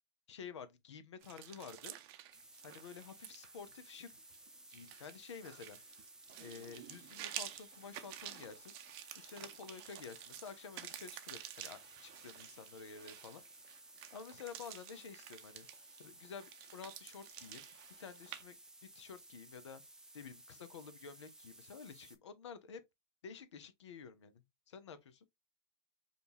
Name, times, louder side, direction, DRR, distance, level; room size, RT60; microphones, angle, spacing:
voice 1, 0.3-2.0 2.6-4.1 4.7-5.8 6.4-8.7 9.2-13.4 14.1-15.7 16.0-17.6 18.0-18.6 18.9-19.8 20.1-22.8 23.2-25.3, left 6 dB, 80° left, 0.6 m, -51 dB
sound 1, 1.2-18.4, right 12 dB, 55° right, 0.6 m, -51 dB
sound 2, 2.3-22.2, right 1 dB, 5° right, 0.6 m, -58 dB
5.2 x 2.4 x 2.8 m
hypercardioid pair, 90°, 15 cm